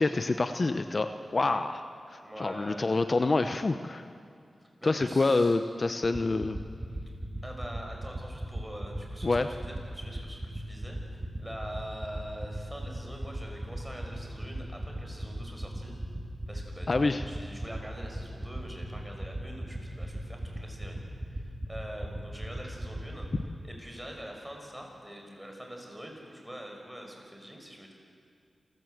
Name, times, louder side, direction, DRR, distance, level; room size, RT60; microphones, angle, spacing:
voice 1, 0.0-4.1 4.8-6.6 9.2-9.5 16.9-17.2, left 3 dB, 45° left, 9 dB, 0.8 m, -27 dB
voice 2, 2.2-2.9 4.8-5.6 7.4-15.9 16.5-21.0 21.3-23.3 23.6-27.9, equal, 10° right, 1 dB, 5.8 m, -44 dB
sound 1, 6.0-23.4, right 1 dB, 25° right, 2.8 m, -35 dB
27.5 x 15.5 x 7.9 m, 2.4 s
cardioid pair, 60°, 0 cm